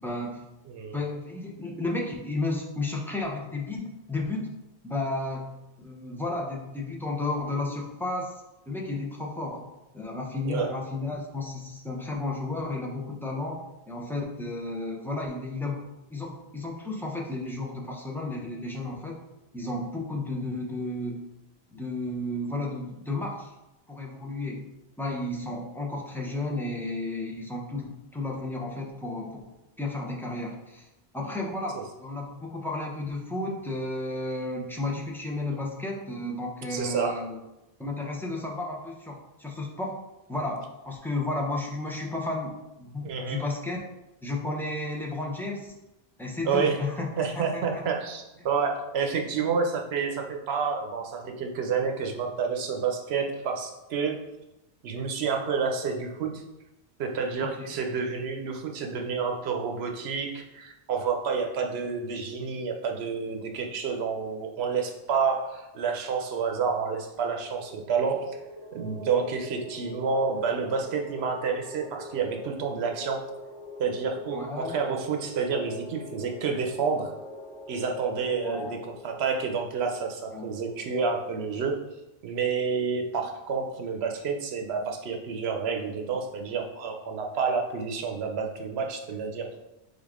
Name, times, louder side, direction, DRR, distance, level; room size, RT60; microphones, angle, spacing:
voice 1, 0.0-0.5 0.9-4.5 4.8-8.4 8.7-9.7 9.9-19.1 19.5-21.2 21.7-23.5 23.9-29.4 29.8-30.9 31.1-37.4 37.8-40.0 40.3-42.5 42.8-43.8 44.2-45.7 46.2-47.1 47.4-47.8 57.4-57.7 74.3-74.8 78.4-78.8 80.3-80.5, left 2 dB, 5° left, -2 dB, 0.4 m, -33 dB
voice 2, 0.7-1.0 10.5-10.7 36.7-37.2 43.0-43.4 46.4-46.8 47.2-54.2 54.8-56.4 57.0-68.4 68.7-73.2 73.8-77.1 77.7-81.8 82.2-89.5, right 5 dB, 75° right, 3 dB, 0.9 m, -29 dB
sound 1, 67.2-81.5, equal, 50° left, 0.7 m, -43 dB
3.8 x 3.6 x 3.5 m, 0.94 s
omnidirectional pair, 1.1 m